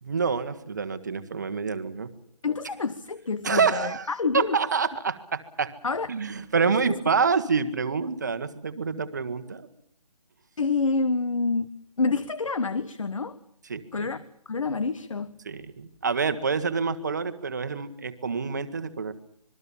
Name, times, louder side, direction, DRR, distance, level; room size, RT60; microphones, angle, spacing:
voice 1, 0.0-2.1 3.4-4.1 4.3-5.7 6.1-9.7 13.7-14.1 15.4-19.1, right 5 dB, 30° right, 11 dB, 1.4 m, -27 dB
voice 2, 2.4-4.6 5.8-6.1 10.6-11.7 12.0-13.4 13.9-15.4, left 4 dB, 55° left, 15 dB, 1.2 m, -27 dB
26.5 x 22.0 x 7.1 m, 0.64 s
hypercardioid pair, 175°, 20 cm